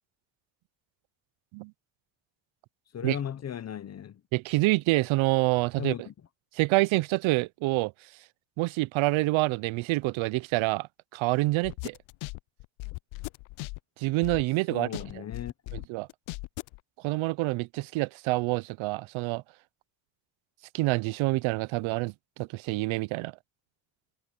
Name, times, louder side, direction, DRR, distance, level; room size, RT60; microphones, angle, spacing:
voice 1, 2.9-4.2 5.8-6.1 14.7-15.8, left 9 dB, 35° left, 0.8 m, -36 dB
voice 2, 4.3-5.9 6.6-7.9 8.6-10.9 11.1-12.0 14.0-14.9 15.9-16.1 17.0-19.4 20.7-22.1 22.4-23.3, right 21 dB, 85° right, 0.6 m, -27 dB
sound 1, 11.6-14.6 14.9-16.8, left 22 dB, 85° left, 0.6 m, -38 dB
cardioid pair, 135°, 46 cm